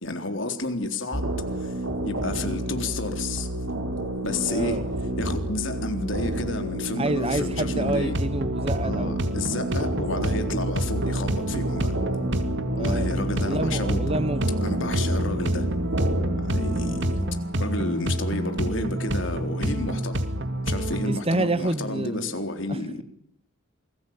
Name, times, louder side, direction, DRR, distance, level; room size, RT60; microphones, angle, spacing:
voice 1, 0.0-1.8 2.0-3.5 4.2-4.9 5.2-8.2 8.8-12.0 12.7-14.1 14.6-15.7 16.4-17.1 17.6-20.3 20.6-23.0, left 2 dB, 60° left, 3.9 m, -31 dB
sound 1, 1.1-17.2, right 1 dB, 75° right, 6.3 m, -30 dB
voice 2, 4.5-4.8 7.0-9.2 12.8-13.1 13.4-14.4 21.1-22.3 22.7-23.0, right 2 dB, 30° right, 1.1 m, -28 dB
sound 2, 7.8-21.2, right 1 dB, 55° right, 2.5 m, -28 dB
28.0 x 20.5 x 9.0 m
head